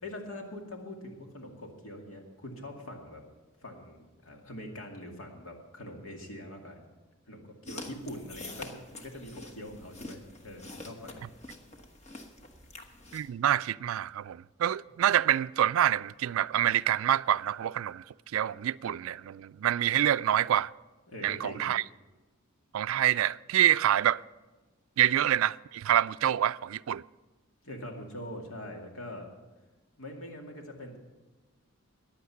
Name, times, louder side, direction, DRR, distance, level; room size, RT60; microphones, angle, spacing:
voice 1, 0.0-3.2 3.6-6.9 7.3-11.3 21.1-21.7 27.6-29.3 30.0-31.0, left 1 dB, 75° left, 2.4 m, -43 dB
sound 1, 7.7-13.3, left 2 dB, 30° left, 1.3 m, -46 dB
voice 2, 13.1-18.0 18.3-20.7 21.2-21.8 22.7-24.2 25.0-27.0, right 11 dB, 75° right, 0.3 m, -26 dB
15.0 x 10.0 x 5.8 m
head